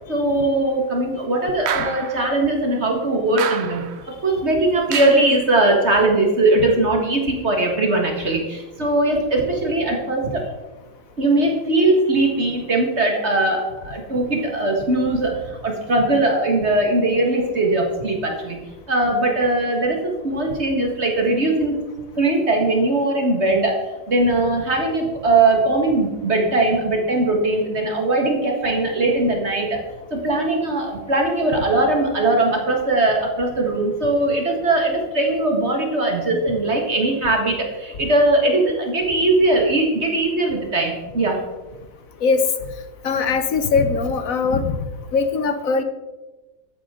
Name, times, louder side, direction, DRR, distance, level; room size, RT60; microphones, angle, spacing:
voice 1, 0.1-10.4 11.2-18.6 18.9-21.8 22.2-29.8 30.1-41.4, right 2 dB, 35° right, 1 dB, 1.9 m, -20 dB
sound 1, 1.7-2.3 3.4-4.0 4.9-5.4, right 8 dB, 70° right, 0.6 m, -28 dB
voice 2, 43.0-44.8 45.1-45.8, left 4 dB, 55° left, 9 dB, 1.2 m, -20 dB
13.5 x 9.1 x 3.8 m, 1.1 s
omnidirectional pair, 2.0 m